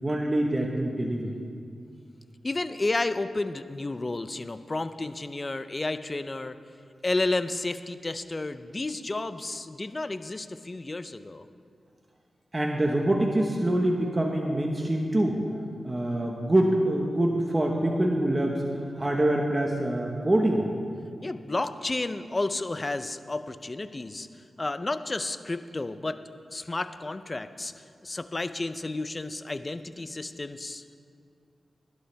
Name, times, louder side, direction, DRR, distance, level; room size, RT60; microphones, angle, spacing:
voice 1, 0.0-1.3 12.5-15.4 15.8-18.6 19.0-20.6, right 1 dB, 25° right, 0 dB, 1.2 m, -25 dB
voice 2, 2.4-6.6 7.0-11.5 21.2-24.3 24.6-26.2 26.5-30.8, left 2 dB, 35° left, 11 dB, 0.5 m, -31 dB
17.0 x 11.5 x 3.4 m, 2.3 s
cardioid pair, 60°, 0 cm